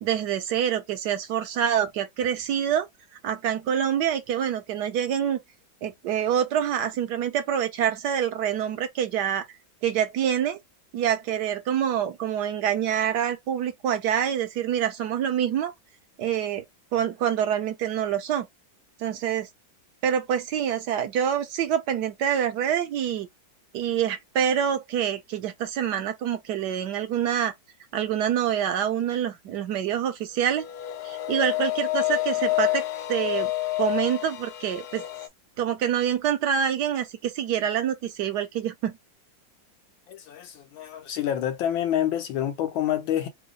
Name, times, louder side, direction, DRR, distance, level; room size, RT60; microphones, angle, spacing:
voice 1, 0.0-2.9 3.2-5.4 5.8-9.4 9.8-10.6 10.9-15.7 16.2-16.6 16.9-18.5 19.0-19.5 20.0-23.3 23.7-27.5 27.9-30.6 31.0-32.8 33.1-33.5 33.8-35.0 35.6-38.9, right 9 dB, 70° right, 1.1 m, -26 dB
sound 1, 30.5-35.3, left 15 dB, 75° left, 0.9 m, -28 dB
voice 2, 40.1-43.3, left 11 dB, 90° left, 1.6 m, -27 dB
3.7 x 2.0 x 3.7 m
omnidirectional pair, 2.1 m